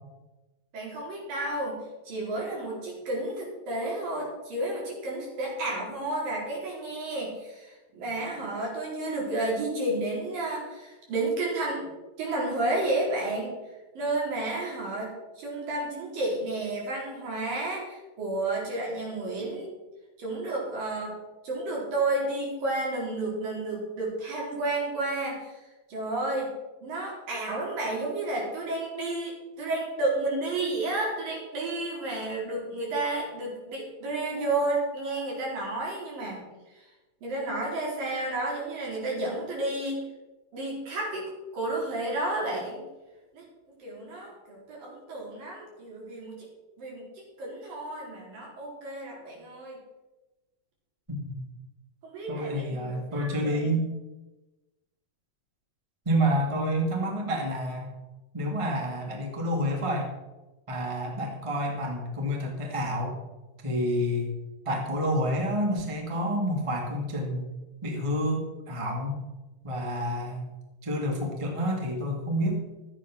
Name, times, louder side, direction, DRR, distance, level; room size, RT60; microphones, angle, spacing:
voice 1, 0.7-1.8 2.1-11.9 12.2-13.6 14.0-15.1 15.4-19.7 20.2-21.2 21.4-25.6 25.9-26.5 26.8-36.4 36.7-36.8 37.2-40.0 40.5-42.8 43.3-43.5 43.8-46.4 46.8-49.8 52.0-53.8, right 2 dB, 70° right, -4 dB, 6.0 m, -31 dB
voice 2, 52.3-53.9 56.0-58.0 58.3-60.1 60.7-63.2 63.6-64.3 64.6-67.5 67.8-69.2 69.6-70.5 70.8-72.6, equal, 10° right, 0 dB, 1.5 m, -29 dB
13.0 x 9.1 x 6.1 m, 1.1 s
omnidirectional pair, 4.1 m